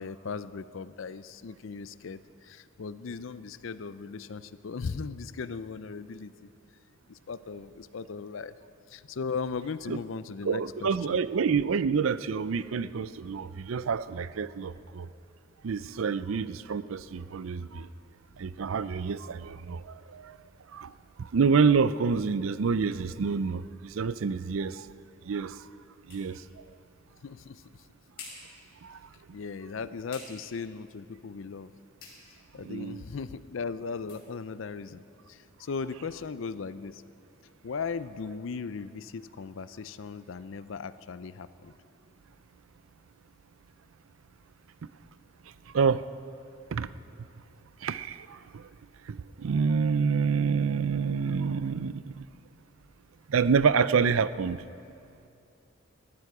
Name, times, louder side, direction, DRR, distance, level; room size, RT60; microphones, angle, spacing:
voice 1, 0.0-6.5 7.1-8.5 8.9-11.2 27.2-27.6 29.3-31.7 32.5-35.0 35.3-37.0 37.6-41.7, left 5 dB, 70° left, 15 dB, 0.5 m, -37 dB
voice 2, 10.4-15.1 15.6-17.9 18.4-20.4 20.7-20.9 21.2-24.9 25.2-25.7 26.1-26.6 28.8-29.0 32.6-33.0 45.7-46.0 46.7-46.9 47.8-48.7 49.1-52.3 53.3-54.6, right 5 dB, 85° right, 15 dB, 0.5 m, -28 dB
sound 1, 25.5-35.9, left 4 dB, 50° left, 5.0 m, -55 dB
19.0 x 13.5 x 4.9 m, 2.6 s
head